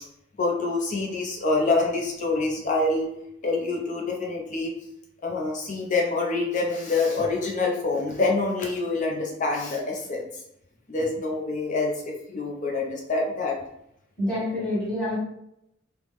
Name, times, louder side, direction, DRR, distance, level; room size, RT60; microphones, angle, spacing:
voice 1, 0.4-3.1 3.4-4.7 5.2-10.2 10.9-13.6, left 3 dB, 35° left, -1 dB, 0.5 m, -26 dB
voice 2, 14.2-15.2, left 1 dB, 5° left, -9 dB, 1.1 m, -27 dB
3.3 x 2.0 x 3.1 m, 0.78 s
head